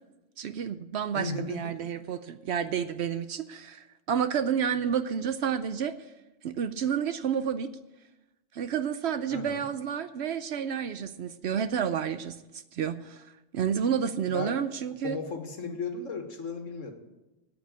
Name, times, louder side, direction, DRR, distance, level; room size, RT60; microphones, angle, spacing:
voice 1, 0.4-5.9 6.4-7.7 8.5-12.4 12.7-13.3 13.5-15.2, right 8 dB, 65° right, 12 dB, 0.8 m, -30 dB
voice 2, 1.1-1.9 9.3-9.7 14.3-14.6 15.0-16.9, left 4 dB, 75° left, 5 dB, 1.8 m, -36 dB
8.8 x 8.8 x 8.7 m, 1.0 s
omnidirectional pair, 1.3 m